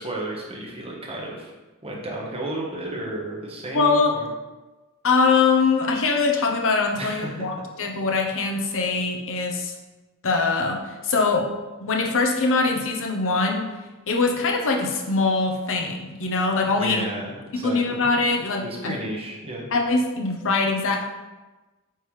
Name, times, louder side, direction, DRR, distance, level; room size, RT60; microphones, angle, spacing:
voice 1, 0.0-1.5 1.8-4.3 7.0-7.5 16.7-18.1 18.6-19.7, right 1 dB, 25° right, -3 dB, 1.2 m, -33 dB
voice 2, 3.7-4.1 5.0-7.5 7.8-9.7 10.2-11.5 11.8-13.7 14.1-17.0 17.5-18.9 19.7-21.1, left 4 dB, 60° left, 2 dB, 0.8 m, -22 dB
8.9 x 3.4 x 3.2 m, 1.2 s
head